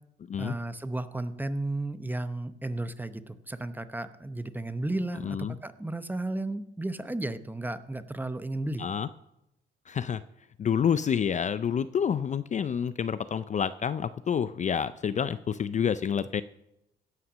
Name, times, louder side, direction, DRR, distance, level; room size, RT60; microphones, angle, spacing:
voice 1, 0.4-8.9, right 2 dB, 10° right, 12 dB, 0.8 m, -34 dB
voice 2, 5.2-5.5 8.8-9.1 9.9-10.2 10.6-16.4, left 7 dB, 35° left, 14 dB, 0.4 m, -28 dB
17.0 x 5.8 x 6.2 m, 0.86 s
cardioid pair, 90°, 20 cm